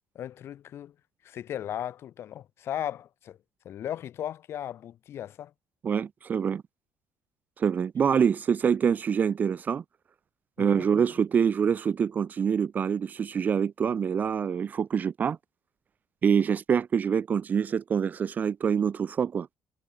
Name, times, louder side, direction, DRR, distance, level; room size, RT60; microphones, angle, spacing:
voice 1, 0.1-0.9 1.2-3.4 3.6-5.5 10.6-10.9, left 11 dB, 45° left, 6.7 m, -36 dB
voice 2, 5.8-6.6 7.6-9.8 10.6-15.4 16.2-19.5, right 7 dB, 30° right, 1.7 m, -25 dB
cardioid pair, 175°, 6 cm